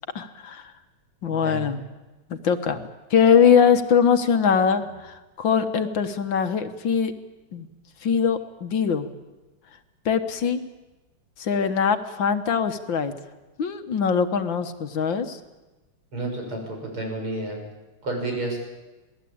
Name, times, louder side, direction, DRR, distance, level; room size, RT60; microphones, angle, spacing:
voice 1, 0.2-0.6 1.2-1.8 2.3-2.8 3.1-7.1 7.5-7.7 8.0-9.1 10.1-10.6 11.4-13.1 13.6-15.4, left 7 dB, 65° left, 9 dB, 1.9 m, -22 dB
voice 2, 1.3-1.7 16.1-17.6 18.0-18.6, right 2 dB, 85° right, 1 dB, 7.9 m, -30 dB
27.0 x 19.5 x 8.7 m, 1.1 s
omnidirectional pair, 2.3 m